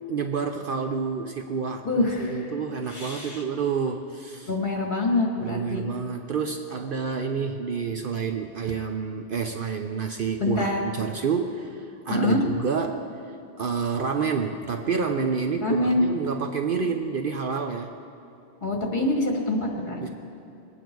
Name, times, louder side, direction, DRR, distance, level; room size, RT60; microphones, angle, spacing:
voice 1, 0.1-4.5 5.4-13.1 13.6-17.9 20.0-20.1, right 5 dB, 55° right, 4 dB, 0.8 m, -28 dB
voice 2, 1.8-2.5 2.9-3.4 4.5-5.8 10.4-10.8 12.1-12.4 15.6-16.0 18.6-20.1, left 2 dB, 45° left, 0 dB, 2.1 m, -25 dB
21.5 x 9.1 x 4.7 m, 2.7 s
omnidirectional pair, 1.2 m